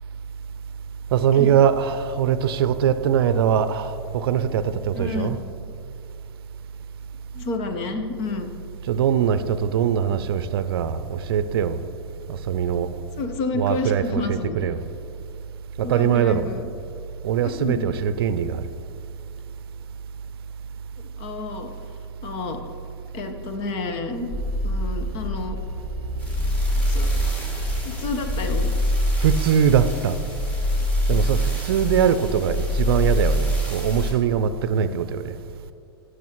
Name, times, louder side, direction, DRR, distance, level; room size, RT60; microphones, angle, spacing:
voice 1, 1.1-5.4 8.9-11.8 12.3-12.9 13.5-14.8 15.8-16.5 17.2-18.6 29.2-30.2 31.1-35.4, right 8 dB, 65° right, 0.5 m, -22 dB
voice 2, 4.9-5.3 7.3-8.5 13.2-14.6 15.8-16.7 17.4-17.9 21.0-21.7 22.2-22.6 23.1-24.3 24.6-25.6 26.9-27.3 27.8-28.7, left 3 dB, 45° left, 1.1 m, -30 dB
sound 1, 24.3-34.1, equal, 10° left, 2.4 m, -24 dB
17.5 x 6.5 x 3.1 m
hypercardioid pair, 100°, 13 cm